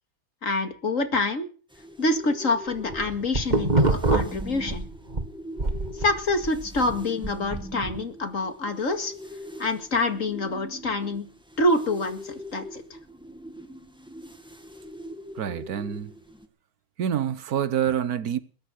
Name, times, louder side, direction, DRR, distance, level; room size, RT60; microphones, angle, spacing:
voice 1, 0.4-1.5 2.0-4.9 5.9-9.1 9.6-11.3 11.6-12.8, left 2 dB, 60° left, 2.5 m, -26 dB
sound 1, 1.7-16.5, left 1 dB, 5° right, 1.9 m, -42 dB
sound 2, 2.7-5.3 5.6-8.0, right 2 dB, 30° right, 2.1 m, -25 dB
voice 2, 15.3-16.1 17.0-18.4, right 9 dB, 75° right, 1.5 m, -27 dB
21.0 x 10.5 x 6.4 m
omnidirectional pair, 1.6 m